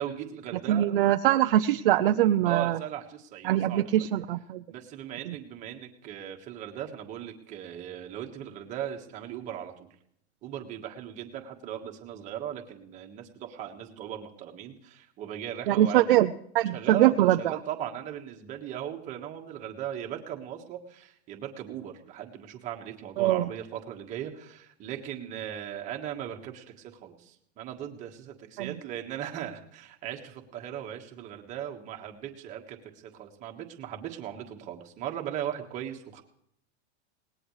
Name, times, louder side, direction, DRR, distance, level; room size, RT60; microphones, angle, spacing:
voice 1, 0.0-1.0 2.4-4.1 4.7-9.9 10.4-16.1 16.7-36.2, right 10 dB, 20° right, 3 dB, 1.5 m, -38 dB
voice 2, 0.7-2.8 3.4-4.6 5.3-5.4 15.7-17.6 23.2-23.5 28.6-28.7, right 13 dB, 50° right, 7 dB, 0.6 m, -23 dB
23.0 x 19.5 x 3.2 m, 0.69 s
supercardioid pair, 175°, 35 cm